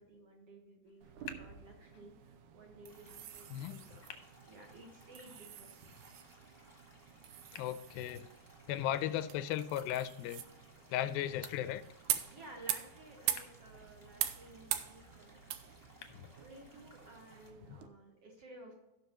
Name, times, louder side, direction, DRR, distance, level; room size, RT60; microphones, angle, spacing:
voice 1, 0.0-4.0 4.5-5.9 8.7-8.9 12.3-15.4 16.4-18.8, right 1 dB, 55° right, 0 dB, 1.9 m, -55 dB
sound 1, 0.8-16.8, left 8 dB, 65° left, 1.9 m, -59 dB
sound 2, 1.0-17.9, right 11 dB, 80° right, 1.9 m, -43 dB
sound 3, 2.9-17.5, equal, 30° right, 0.3 m, -63 dB
voice 2, 7.5-8.3 8.7-10.4 10.9-11.8 16.1-16.3 17.7-17.8, left 11 dB, 85° left, 13 dB, 2.4 m, -36 dB
16.5 x 6.3 x 3.0 m, 0.97 s
omnidirectional pair, 4.2 m